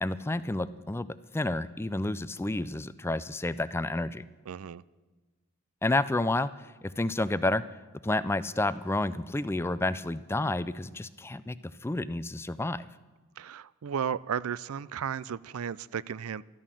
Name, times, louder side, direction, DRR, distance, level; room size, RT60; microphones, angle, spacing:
voice 1, 0.0-4.2 5.8-7.6 8.0-11.6 11.8-12.9, left 2 dB, 10° left, 15 dB, 0.4 m, -30 dB
voice 2, 4.5-4.8 13.4-16.4, right 8 dB, 85° right, 20 dB, 0.4 m, -34 dB
13.0 x 12.5 x 7.6 m, 1.3 s
head